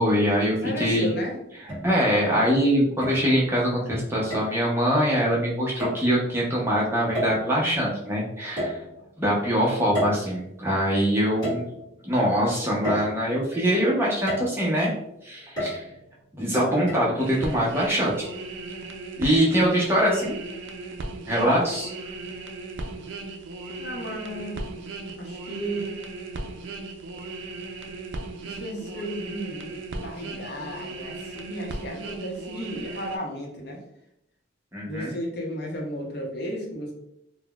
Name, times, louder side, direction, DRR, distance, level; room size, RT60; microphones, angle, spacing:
voice 1, 0.0-1.1 1.8-8.8 9.2-11.6 12.0-14.9 15.2-15.9 16.3-18.2 19.2-20.4 21.3-21.9 34.7-35.1, equal, 10° right, -4 dB, 0.5 m, -23 dB
voice 2, 0.6-1.4 23.8-24.7 25.2-25.9 28.4-33.8 34.8-36.9, equal, 55° left, 0 dB, 0.7 m, -34 dB
sound 1, 0.7-0.8 1.7-2.3 3.0-3.6 4.3-4.6 5.8-6.1 7.1-7.7 8.6-9.2 9.9-10.8 11.4-12.1 12.8-13.6 14.3-14.8 15.6-16.2 16.9-17.0, equal, 20° left, 1.1 m, -31 dB
sound 2, 17.2-33.2, right 3 dB, 70° right, 0.3 m, -37 dB
3.8 x 2.0 x 2.2 m, 0.78 s
head